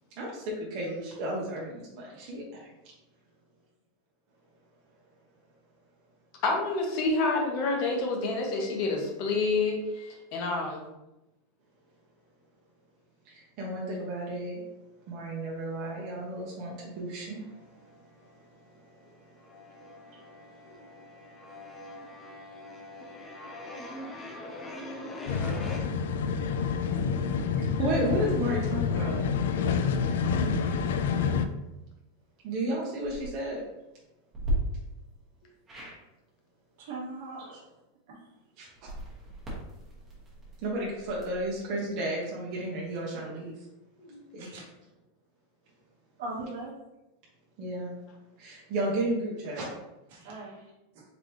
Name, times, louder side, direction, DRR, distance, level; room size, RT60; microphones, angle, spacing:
voice 1, 0.2-2.7 13.3-14.6 15.1-17.5 19.8-21.1 26.1-29.3 32.4-33.6 37.5-37.6 38.6-38.7 40.6-43.5 44.3-44.6 47.6-47.9 48.4-49.7, right 1 dB, 35° right, -4 dB, 0.9 m, -33 dB
voice 2, 6.4-10.8 20.6-20.7 44.0-44.2, left 3 dB, 40° left, 1 dB, 1.0 m, -28 dB
sound 1, 17.5-18.3 18.6-25.8, left 1 dB, 10° left, 0.5 m, -43 dB
sound 2, 25.3-31.5, left 6 dB, 75° left, 0.3 m, -28 dB
sound 3, 33.0-33.3 34.3-34.5 35.7-36.0 38.7-41.5, equal, 15° right, 1.2 m, -37 dB
voice 3, 36.8-37.5 38.1-38.2 44.4-44.7 46.2-46.7 50.1-51.0, right 2 dB, 60° right, -4 dB, 1.1 m, -40 dB
4.1 x 3.3 x 3.0 m, 0.95 s
supercardioid pair, 170°, 0 cm